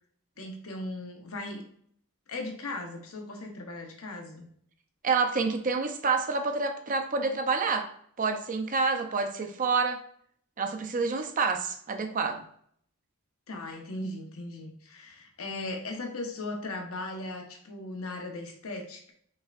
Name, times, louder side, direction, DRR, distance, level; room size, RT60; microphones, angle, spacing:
voice 1, 0.4-1.6 2.3-4.5 13.5-19.1, left 2 dB, 70° left, 3 dB, 0.9 m, -38 dB
voice 2, 5.0-7.9 8.2-10.0 10.6-12.5, right 4 dB, 40° right, 6 dB, 0.5 m, -28 dB
5.5 x 3.3 x 2.5 m, 0.64 s
head